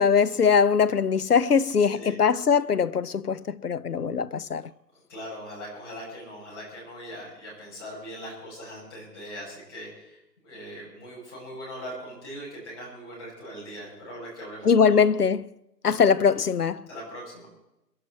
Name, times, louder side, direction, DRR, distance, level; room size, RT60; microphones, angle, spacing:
voice 1, 0.0-4.7 14.6-15.5 15.8-16.8, left 6 dB, 65° left, 0.8 m, -21 dB
voice 2, 5.1-10.2 10.4-14.9 16.9-17.5, equal, 15° left, 5.9 m, -40 dB
26.0 x 11.0 x 4.4 m
hypercardioid pair, 180°, 50 cm